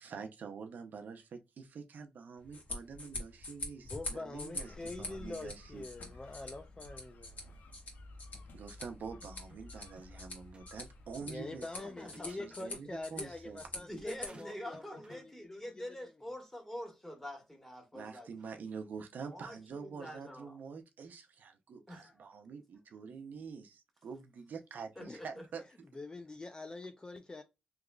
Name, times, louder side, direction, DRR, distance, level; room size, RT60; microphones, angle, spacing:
voice 1, 0.0-5.8 8.5-11.7 12.1-13.6 17.9-25.6, right 5 dB, 75° right, 0.6 m, -46 dB
sound 1, 2.4-14.3, left 2 dB, 55° left, 1.5 m, -46 dB
voice 2, 3.8-7.4 11.2-16.0 17.9-18.1 25.0-25.2 25.9-27.4, left 2 dB, 25° left, 0.4 m, -45 dB
sound 2, 4.3-11.3, left 2 dB, 80° left, 0.6 m, -54 dB
sound 3, 9.2-10.2 10.5-10.7 11.7-12.8 14.3-15.3, right 2 dB, 35° right, 0.7 m, -58 dB
voice 3, 11.7-12.3 12.6-12.7 13.9-18.3 19.3-20.6 21.9-22.3 24.1-24.2 25.0-25.3, equal, 10° left, 1.6 m, -46 dB
3.6 x 3.0 x 2.2 m
cardioid pair, 80°, 3 cm